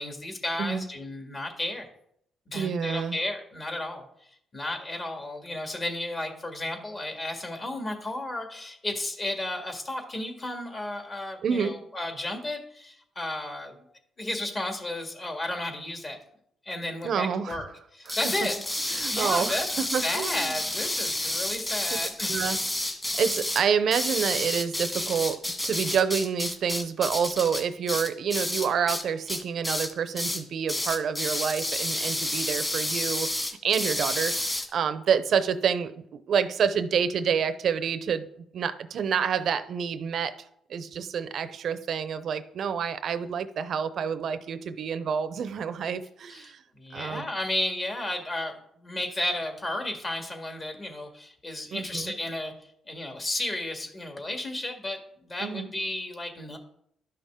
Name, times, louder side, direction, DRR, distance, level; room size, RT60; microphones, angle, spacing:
voice 1, 0.0-1.9 2.5-4.1 4.5-13.8 14.2-16.2 16.7-17.7 17.9-18.6 19.1-22.4 46.3-52.5 52.9-56.6, left 1 dB, 35° left, 3 dB, 1.8 m, -33 dB
voice 2, 2.5-3.2 11.4-11.8 17.0-17.6 18.1-18.2 18.9-20.6 22.3-22.6 23.2-38.3 38.5-40.4 40.7-46.6 46.9-47.3 51.7-52.1 55.4-55.7, right 7 dB, 65° right, 13 dB, 0.6 m, -28 dB
sound 1, 18.1-29.0 29.3-29.9 30.2-30.4 30.7-34.7, left 1 dB, 15° left, 1.7 m, -30 dB
11.5 x 5.7 x 3.7 m, 0.70 s
cardioid pair, 90°, 0 cm